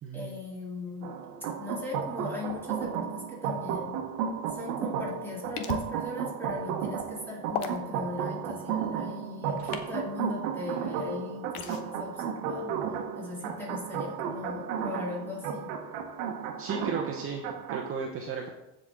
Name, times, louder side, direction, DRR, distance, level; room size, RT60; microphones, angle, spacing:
voice 1, 0.1-1.1 1.6-4.0 4.5-12.8 13.1-15.7, left 3 dB, 5° left, -4 dB, 2.6 m, -39 dB
sound 1, 1.0-17.9, right 7 dB, 85° right, 1.1 m, -34 dB
sound 2, 5.6-5.9 7.5-7.8 9.5-9.9 11.5-11.8, left 7 dB, 80° left, 1.1 m, -34 dB
voice 2, 16.6-18.5, right 5 dB, 30° right, 1 dB, 0.9 m, -34 dB
15.0 x 5.1 x 3.7 m, 0.93 s
cardioid pair, 145°, 44 cm